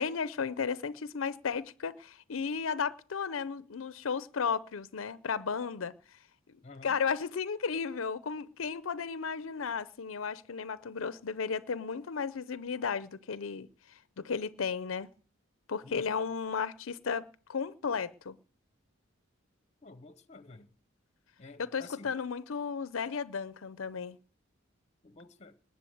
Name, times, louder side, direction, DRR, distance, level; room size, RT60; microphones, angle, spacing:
voice 1, 0.0-5.9 6.8-13.7 14.2-15.1 15.7-18.4 21.6-24.2, left 6 dB, 85° left, 0.6 m, -34 dB
voice 2, 6.6-7.0 15.8-16.2 19.8-20.7 21.4-22.1 25.0-25.6, left 3 dB, 35° left, 0.9 m, -51 dB
20.0 x 6.8 x 7.9 m
head